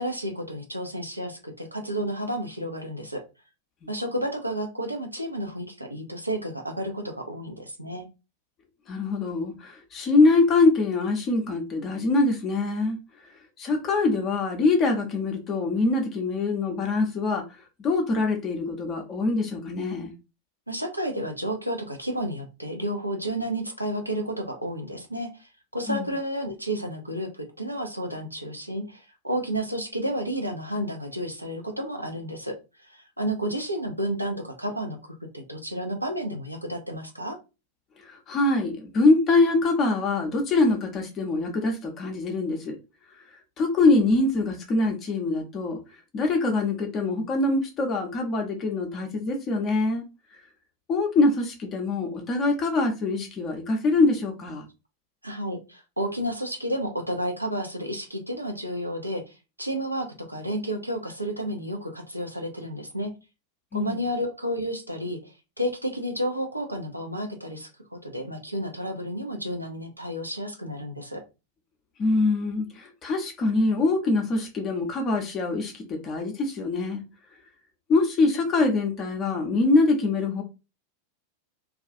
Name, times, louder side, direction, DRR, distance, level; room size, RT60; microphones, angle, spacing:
voice 1, 0.0-3.2 3.9-8.1 20.7-32.5 32.8-37.4 55.2-63.1 63.7-71.2, equal, 85° right, 0.5 m, -31 dB
voice 2, 8.9-13.0 13.6-17.4 17.8-20.1 25.9-26.0 38.0-42.8 43.6-45.8 46.1-50.0 50.9-54.6 63.7-64.0 72.0-77.0 77.9-80.4, left 3 dB, 30° left, 0.5 m, -24 dB
2.3 x 2.3 x 2.5 m
figure-of-eight pair, 90°, 0 cm